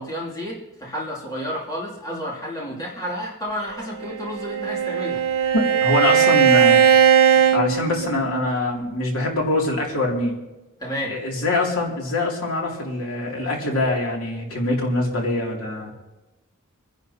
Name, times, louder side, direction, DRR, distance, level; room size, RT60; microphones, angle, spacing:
voice 1, 0.0-5.2 10.8-11.2, equal, 15° left, -5 dB, 2.7 m, -31 dB
Bowed string instrument, 4.0-8.5, right 8 dB, 90° right, 1.1 m, -18 dB
voice 2, 5.5-6.8 7.5-10.3 11.1-15.9, left 2 dB, 70° left, -2 dB, 2.8 m, -24 dB
28.0 x 10.5 x 2.9 m, 1.0 s
head